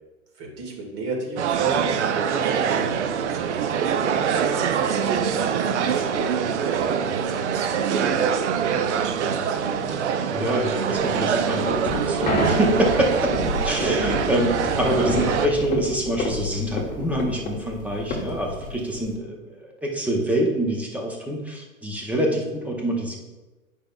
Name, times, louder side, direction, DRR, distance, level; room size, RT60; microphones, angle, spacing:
voice 1, 0.4-6.9 7.2-10.1 13.5-14.2, right 3 dB, 35° right, 0 dB, 2.0 m, -33 dB
sound 1, 1.4-15.5, right 7 dB, 55° right, 0.6 m, -24 dB
voice 2, 10.3-13.4 13.6-23.2, right 1 dB, 5° right, 0 dB, 0.7 m, -25 dB
sound 2, 11.0-19.2, left 1 dB, 20° left, 1.1 m, -29 dB
9.7 x 5.3 x 2.3 m, 1.2 s
hypercardioid pair, 120°, 42 cm